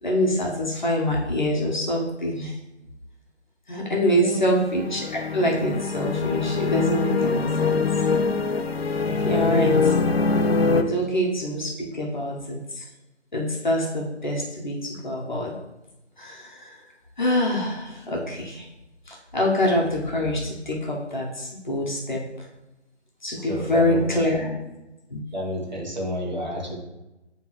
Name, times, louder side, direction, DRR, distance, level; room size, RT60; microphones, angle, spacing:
voice 1, 0.0-2.6 3.7-7.9 9.2-9.7 10.8-12.9 13.3-15.5 16.2-16.8 17.2-18.6 19.1-22.5 23.2-24.6 25.1-25.2, left 1 dB, 40° left, -2 dB, 1.1 m, -25 dB
voice 2, 3.9-4.4 9.0-9.7 23.3-24.3 25.3-26.8, equal, 40° right, -3 dB, 1.3 m, -31 dB
sound 1, 4.3-10.8, left 4 dB, 60° left, 0.5 m, -23 dB
9.1 x 3.4 x 3.1 m, 0.99 s
figure-of-eight pair, 165°, 36 cm